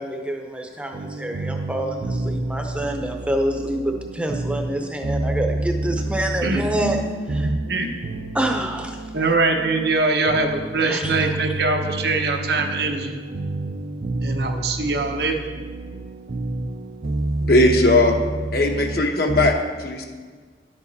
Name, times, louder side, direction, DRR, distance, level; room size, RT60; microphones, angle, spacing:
voice 1, 0.0-7.0 7.3-7.5 8.3-9.0 10.8-11.2, right 1 dB, 5° right, 3 dB, 0.7 m, -27 dB
sound 1, 0.9-19.5, right 2 dB, 45° right, 0.5 m, -29 dB
voice 2, 6.4-7.0 7.4-7.9 9.1-13.2 14.2-15.4, right 3 dB, 65° right, 3 dB, 0.9 m, -23 dB
voice 3, 17.5-18.2 18.5-20.1, left 2 dB, 55° left, 3 dB, 0.9 m, -18 dB
11.0 x 7.0 x 4.1 m, 1.5 s
head